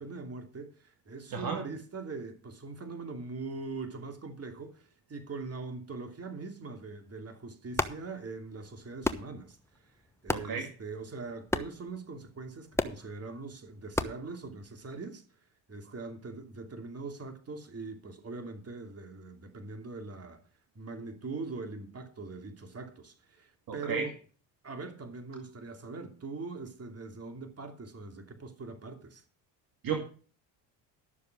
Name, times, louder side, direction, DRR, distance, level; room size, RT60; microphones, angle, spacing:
voice 1, 0.0-9.6 9.8-9.9 10.2-15.2 15.7-20.4 20.7-24.1 24.6-29.2, right 3 dB, 35° right, 2.9 m, -42 dB
voice 2, 1.3-1.6 10.3-10.7 23.7-24.1 29.8-30.0, right 6 dB, 50° right, 2.1 m, -33 dB
sound 1, 7.6-15.0, left 2 dB, 5° left, 1.1 m, -37 dB
12.5 x 6.9 x 6.4 m
supercardioid pair, 75°, 44 cm